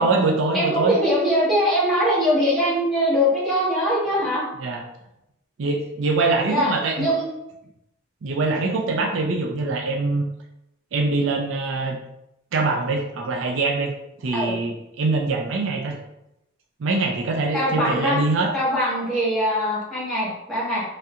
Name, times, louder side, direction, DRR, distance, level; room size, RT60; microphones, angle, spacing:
voice 1, 0.0-1.0 4.6-4.8 5.6-7.1 8.2-10.2 10.9-12.0 12.5-13.9 14.2-16.0 16.8-18.5, right 3 dB, 65° right, 1 dB, 0.4 m, -23 dB
voice 2, 0.5-4.4 6.5-6.7 7.0-7.2 14.3-14.5 17.5-18.2 18.5-20.8, equal, ahead, -11 dB, 1.4 m, -22 dB
3.2 x 2.7 x 2.4 m, 0.85 s
head